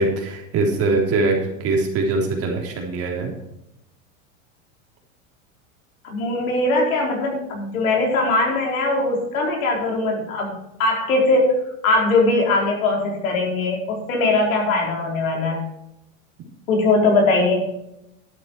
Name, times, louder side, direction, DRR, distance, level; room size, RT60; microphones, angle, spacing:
voice 1, 0.0-3.3, right 3 dB, 35° right, 1 dB, 3.4 m, -22 dB
voice 2, 6.0-11.6 11.8-15.6 16.7-17.7, left 2 dB, 80° left, 0 dB, 4.8 m, -20 dB
12.0 x 8.9 x 4.7 m, 0.83 s
supercardioid pair, 125°, 40 cm